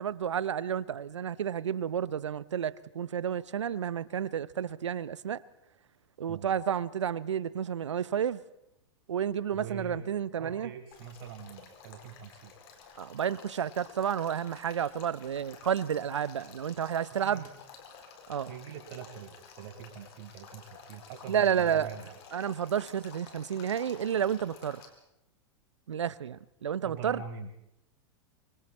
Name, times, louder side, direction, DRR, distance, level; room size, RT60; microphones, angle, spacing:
voice 1, 0.0-5.4 6.2-8.4 9.1-10.7 13.0-17.5 18.3-18.5 21.3-21.9 22.3-24.8 25.9-27.2, right 8 dB, 85° right, 0.8 m, -31 dB
voice 2, 9.5-10.0 10.4-12.5 17.1-17.5 18.5-22.2 26.8-27.5, right 6 dB, 55° right, 4.9 m, -44 dB
Male speech man speaking / Stream / Trickle dribble, 10.9-24.9, left 6 dB, 60° left, 4.4 m, -52 dB
25.5 x 24.0 x 4.3 m
hypercardioid pair, 100°, 15 cm